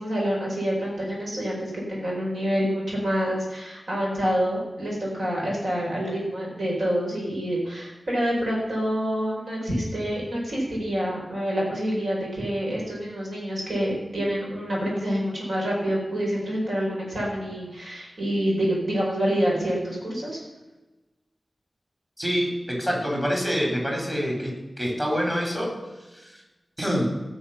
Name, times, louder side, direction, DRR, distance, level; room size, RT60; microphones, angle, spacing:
voice 1, 0.0-20.4, equal, 80° right, -4 dB, 4.9 m, -27 dB
voice 2, 22.2-25.8 26.1-26.4 26.8-27.0, equal, 15° right, 0 dB, 3.8 m, -26 dB
17.0 x 6.4 x 5.7 m, 1.1 s
wide cardioid pair, 100°, 0 cm